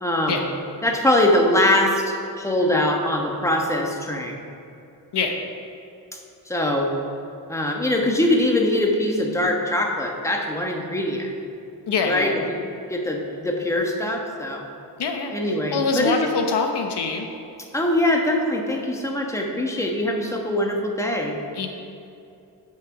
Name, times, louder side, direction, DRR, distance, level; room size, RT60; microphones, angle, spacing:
voice 1, 0.0-0.4 0.8-4.4 6.5-6.9 7.5-11.3 12.1-12.6 12.9-14.7 15.3-16.1 17.7-21.4, left 1 dB, 5° left, 1 dB, 1.3 m, -22 dB
voice 2, 11.9-12.5 15.0-17.3 21.5-21.7, left 4 dB, 75° left, 4 dB, 1.0 m, -24 dB
8.8 x 6.3 x 5.0 m, 2.7 s
cardioid pair, 80°, 41 cm